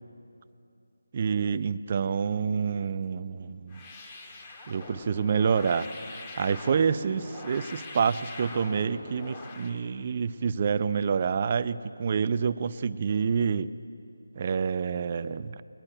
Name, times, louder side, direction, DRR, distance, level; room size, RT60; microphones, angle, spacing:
voice 1, 1.1-3.8 4.7-13.7 14.3-15.6, right 6 dB, 35° right, 14 dB, 0.6 m, -28 dB
sound 1, 3.7-9.8, left 3 dB, 25° left, 2.4 m, -43 dB
21.0 x 21.0 x 9.1 m, 2.6 s
figure-of-eight pair, 160°, 0 cm